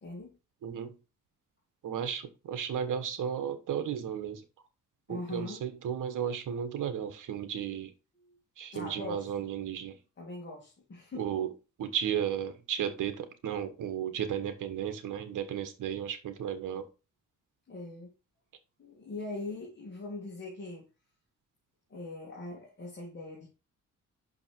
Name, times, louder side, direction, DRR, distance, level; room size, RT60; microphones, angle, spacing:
voice 1, 0.0-0.4 5.1-5.6 8.2-8.4 8.7-9.4 10.2-11.4 17.7-18.2 18.8-20.9 21.9-23.5, left 2 dB, 35° left, 2.4 m, -41 dB
voice 2, 0.6-0.9 1.8-4.4 5.1-7.9 8.6-9.9 11.2-11.5 11.8-16.9, right 9 dB, 70° right, 1.4 m, -34 dB
6.0 x 5.3 x 4.6 m
cardioid pair, 105°, 32 cm